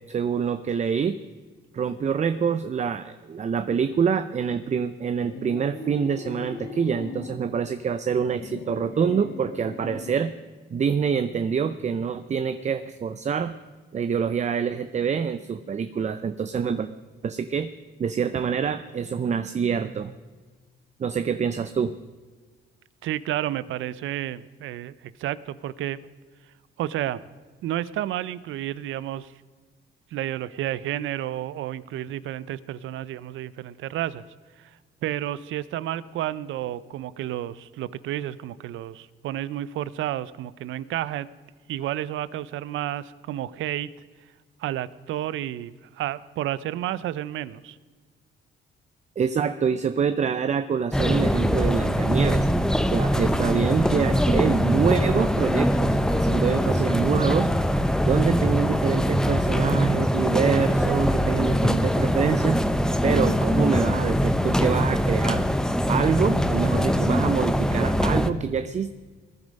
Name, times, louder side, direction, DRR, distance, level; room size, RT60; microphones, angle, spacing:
voice 1, 0.1-1.2 1.7-10.3 10.7-13.5 13.9-16.9 17.2-17.7 18.0-20.1 21.0-22.0 49.2-52.5 52.9-57.5 58.0-62.6 63.0-65.4 65.9-68.9, right 6 dB, 35° right, 12 dB, 0.6 m, -26 dB
sound 1, 5.2-7.5 8.1-10.3, left 3 dB, 55° left, 2.3 m, -39 dB
voice 2, 23.0-26.0 26.8-27.2 27.6-29.3 30.1-34.2 34.6-34.7 35.0-41.3 41.7-43.9 44.6-47.8, right 12 dB, 80° right, 18 dB, 0.6 m, -31 dB
sound 2, 50.9-68.3, equal, 5° left, 0.8 m, -22 dB
19.5 x 11.0 x 5.3 m, 1.4 s
cardioid pair, 90°, 20 cm